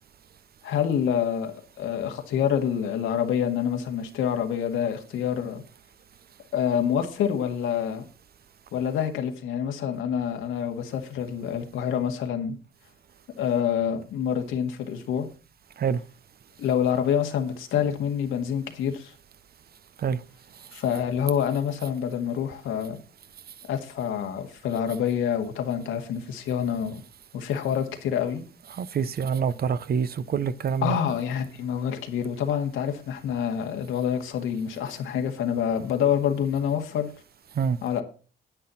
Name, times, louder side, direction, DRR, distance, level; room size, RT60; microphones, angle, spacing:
voice 1, 0.6-5.6 6.5-8.1 8.7-12.6 13.4-15.3 16.6-19.1 20.7-23.0 23.7-27.0 27.3-28.4 30.8-37.1 37.8-38.0, left 8 dB, 85° left, 4 dB, 2.0 m, -27 dB
voice 2, 28.7-31.0 37.6-37.8, right 6 dB, 50° right, 15 dB, 0.9 m, -26 dB
10.0 x 8.9 x 4.2 m, 0.36 s
cardioid pair, 90°, 20 cm